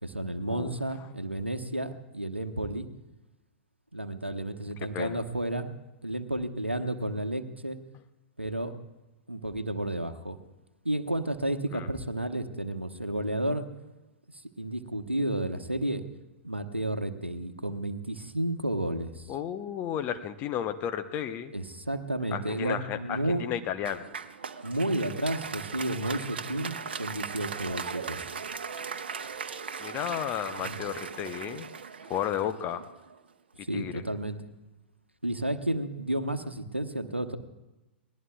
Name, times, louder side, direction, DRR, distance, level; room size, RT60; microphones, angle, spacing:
voice 1, 0.0-2.9 3.9-5.7 6.0-7.8 8.4-8.7 9.3-10.4 10.8-13.7 14.6-16.0 16.4-19.3 21.5-23.6 24.6-28.3 30.6-30.8 33.6-34.4 35.2-37.4, right 1 dB, 90° right, 9 dB, 1.0 m, -32 dB
voice 2, 19.3-21.5 22.3-24.1 29.8-31.7 32.0-32.8 33.7-34.0, left 10 dB, 30° left, 8 dB, 0.9 m, -33 dB
Applause, 23.9-33.2, right 6 dB, 65° right, 0.9 m, -38 dB
28.5 x 20.0 x 2.4 m, 1.1 s
figure-of-eight pair, 100°, 6 cm